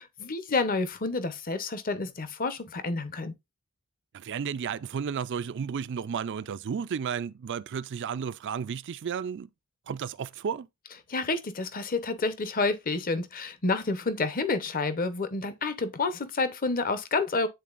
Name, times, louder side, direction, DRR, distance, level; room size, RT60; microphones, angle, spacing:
voice 1, 0.0-3.3 11.1-17.5, left 3 dB, 40° left, 0.8 m, -29 dB
voice 2, 4.1-9.5 9.9-10.7, right 7 dB, 55° right, 0.4 m, -33 dB
10.0 x 3.8 x 2.4 m
head